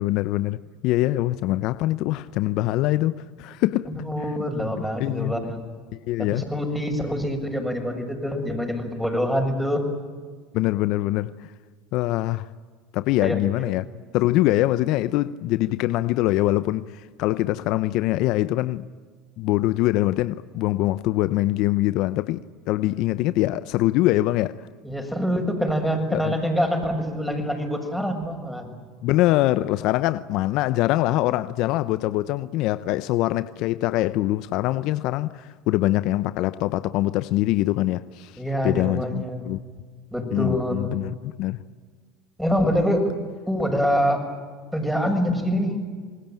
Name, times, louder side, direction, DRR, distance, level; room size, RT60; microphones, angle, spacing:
voice 1, 0.0-3.9 5.0-5.4 5.9-6.5 10.5-11.5 11.9-12.5 12.9-13.8 14.1-18.8 19.4-24.6 26.1-26.4 29.0-39.6 40.3-41.6, left 16 dB, 60° left, 0.7 m, -23 dB
voice 2, 4.0-5.6 6.3-9.9 13.2-13.7 24.8-28.7 38.4-39.4 40.1-40.9 42.4-43.1 43.5-44.2 44.7-45.8, equal, ahead, 6.8 m, -25 dB
28.0 x 20.5 x 9.1 m
hypercardioid pair, 90°, 0 cm